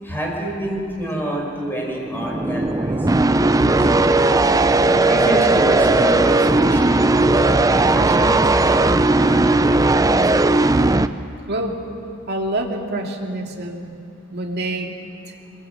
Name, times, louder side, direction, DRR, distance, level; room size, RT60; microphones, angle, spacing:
voice 1, 0.0-4.3 5.0-10.6, right 1 dB, 10° left, -1 dB, 5.4 m, -28 dB
sound 1, 2.1-11.1, right 2 dB, 15° right, 0.5 m, -16 dB
voice 2, 11.5-11.8 12.3-13.9 14.3-15.0 15.3-15.4, right 1 dB, 50° right, 1 dB, 2.4 m, -26 dB
24.0 x 22.0 x 7.8 m, 2.5 s
head